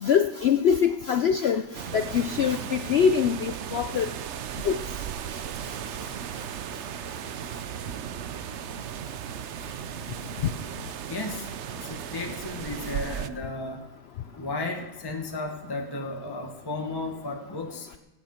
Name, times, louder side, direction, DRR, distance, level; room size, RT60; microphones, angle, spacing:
voice 1, 0.0-1.6 1.9-4.1 4.6-4.8, left 7 dB, 75° left, 9 dB, 0.5 m, -23 dB
sound 1, 1.7-13.3, right 9 dB, 60° right, 0.7 m, -36 dB
voice 2, 11.1-13.8 14.4-17.9, left 2 dB, 15° left, 2 dB, 1.3 m, -34 dB
23.0 x 8.7 x 4.4 m, 1.0 s
omnidirectional pair, 1.7 m